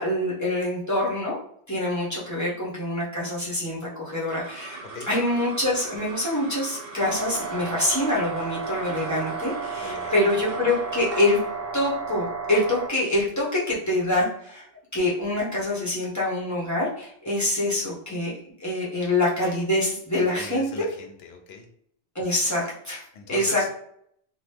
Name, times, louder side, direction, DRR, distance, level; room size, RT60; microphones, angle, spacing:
voice 1, 0.0-1.4 1.7-11.4 11.7-14.7 14.9-18.3 18.6-20.9 22.1-23.7, left 1 dB, 20° left, -6 dB, 0.9 m, -25 dB
sound 1, 4.0-14.6, right 4 dB, 65° right, 0.8 m, -41 dB
sound 2, 7.0-12.9, right 5 dB, 20° right, 0.4 m, -33 dB
voice 2, 9.8-10.2 20.4-21.7 23.1-23.7, left 5 dB, 75° left, 3 dB, 0.9 m, -39 dB
2.9 x 2.3 x 3.3 m, 0.69 s
omnidirectional pair, 1.1 m